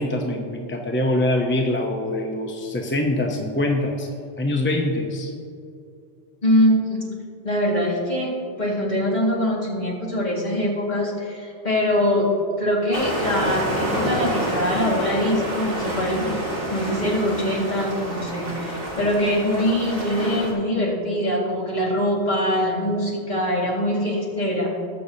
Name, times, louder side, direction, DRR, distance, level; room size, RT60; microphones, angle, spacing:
voice 1, 0.0-4.1 4.4-5.3, left 1 dB, 15° left, 1 dB, 0.6 m, -24 dB
voice 2, 6.4-7.0 7.4-8.3 8.6-12.3 12.6-16.4 16.7-24.7, equal, 40° left, -4 dB, 2.1 m, -23 dB
sound 1, 12.9-20.5, equal, 55° right, 2.0 m, -28 dB
19.5 x 6.6 x 2.8 m, 2.5 s
omnidirectional pair, 1.2 m